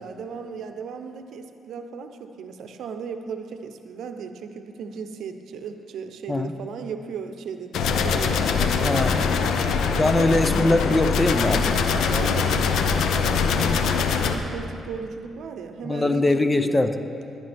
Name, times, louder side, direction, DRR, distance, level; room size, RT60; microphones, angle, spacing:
voice 1, 0.0-10.3 12.0-16.8, right 6 dB, 75° right, 7 dB, 0.7 m, -36 dB
sound 1, 7.7-14.3, left 5 dB, 80° left, 0.7 m, -22 dB
voice 2, 8.8-9.3 10.0-11.8 15.8-17.0, left 2 dB, 20° left, 9 dB, 0.6 m, -22 dB
14.5 x 11.0 x 3.5 m, 2.6 s
cardioid pair, 80°, 0 cm